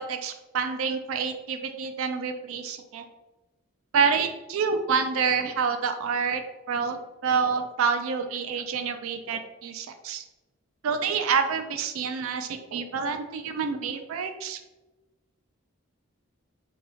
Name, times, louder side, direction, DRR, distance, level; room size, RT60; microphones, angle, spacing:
voice 1, 0.0-3.0 3.9-6.4 6.7-10.2 10.8-14.6, right 6 dB, 75° right, 7 dB, 0.3 m, -28 dB
2.8 x 2.7 x 4.2 m, 1.1 s
head